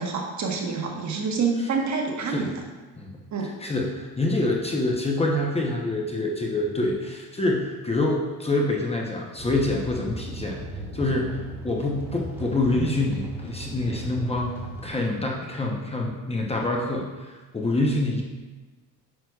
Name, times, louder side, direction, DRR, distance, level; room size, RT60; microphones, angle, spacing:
voice 1, 0.0-2.6 3.3-3.5, right 4 dB, 45° right, 1 dB, 1.2 m, -27 dB
voice 2, 3.6-10.6 10.9-14.5 14.8-18.2, left 2 dB, 15° left, -1 dB, 0.8 m, -26 dB
sound 1, 9.4-14.9, right 1 dB, 5° right, 1.6 m, -36 dB
9.3 x 5.7 x 2.3 m, 1.2 s
cardioid pair, 120°, 38 cm